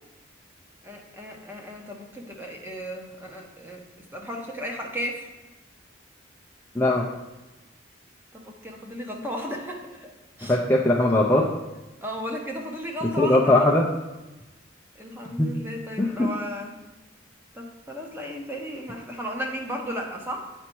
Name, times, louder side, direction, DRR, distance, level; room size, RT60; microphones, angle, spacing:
voice 1, 0.8-3.9 4.1-5.3 8.3-10.1 10.4-10.6 12.0-13.8 14.9-16.8 17.5-20.5, equal, 10° right, 0 dB, 0.9 m, -34 dB
voice 2, 10.4-11.5 13.2-13.9 15.4-15.5 16.0-16.3, left 1 dB, 10° left, -3 dB, 0.5 m, -20 dB
8.2 x 4.4 x 4.5 m, 1.1 s
head